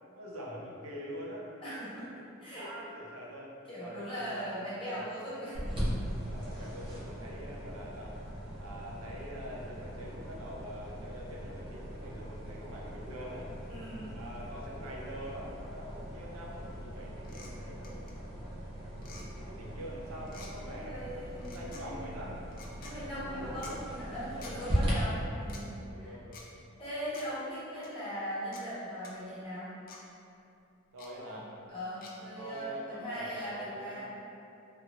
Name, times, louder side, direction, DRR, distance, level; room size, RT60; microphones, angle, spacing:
voice 1, 0.2-1.5 2.5-5.2 6.3-8.2 8.6-13.5 14.1-18.1 18.8-22.4 23.1-23.7 24.4-25.0 25.8-26.5 30.9-31.5 32.3-34.1, equal, 85° right, -4 dB, 0.6 m, -45 dB
voice 2, 1.6-2.7 3.6-5.6 13.7-14.1 20.6-22.0 22.8-26.1 26.8-29.7 31.2-31.4 31.7-34.1, equal, 25° left, -11 dB, 1.1 m, -40 dB
sound 1, 5.5-24.9, equal, 25° right, 0.7 m, -40 dB
sound 2, 17.2-17.5 17.8-18.1 19.0-19.3 20.3-20.5 21.4-21.8 22.5-22.9 23.6-23.8 24.4-24.6 25.4-25.6 26.3-26.5 27.1-27.3 27.8-27.9 28.5-28.6 29.0-29.1 29.9-30.0 31.0-31.1 32.0-32.1, left 4 dB, 45° left, 0.4 m, -49 dB
2.9 x 2.8 x 2.4 m, 2.7 s
head